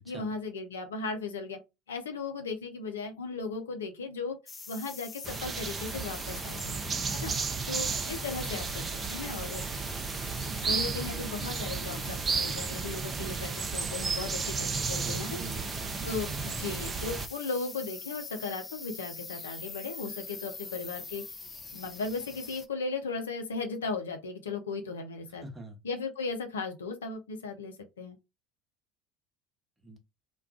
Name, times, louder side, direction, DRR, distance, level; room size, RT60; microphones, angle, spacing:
voice 1, 0.1-1.6 1.9-4.4 4.7-6.8 7.2-7.3 7.7-9.6 10.6-15.4 16.0-21.2 21.7-25.4 25.8-28.2, left 4 dB, 80° left, 0.5 m, -36 dB
sound 1, 4.5-22.7, left 4 dB, 25° left, 0.5 m, -44 dB
sound 2, 5.2-17.3, right 5 dB, 30° right, 0.5 m, -33 dB
voice 2, 14.9-15.9 25.4-25.8 29.8-30.0, right 2 dB, 15° right, 1.0 m, -44 dB
2.3 x 2.2 x 3.5 m
figure-of-eight pair, 65°, 0 cm